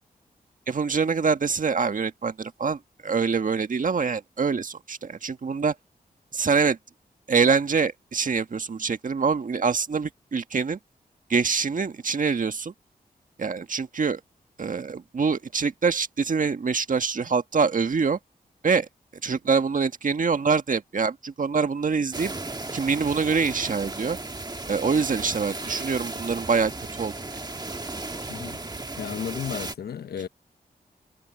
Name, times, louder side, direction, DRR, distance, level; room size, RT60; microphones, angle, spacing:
voice 1, 0.7-5.7 6.3-6.8 7.3-10.8 11.3-12.7 13.4-14.2 14.6-18.2 18.6-18.9 19.2-22.3 22.7-24.2 24.7-27.1, right 5 dB, 55° right, 1.6 m, -25 dB
sound 1, 22.1-29.7, right 2 dB, 25° right, 1.6 m, -35 dB
voice 2, 28.3-28.6 29.0-30.3, left 8 dB, 80° left, 0.8 m, -33 dB
cardioid pair, 55°, 16 cm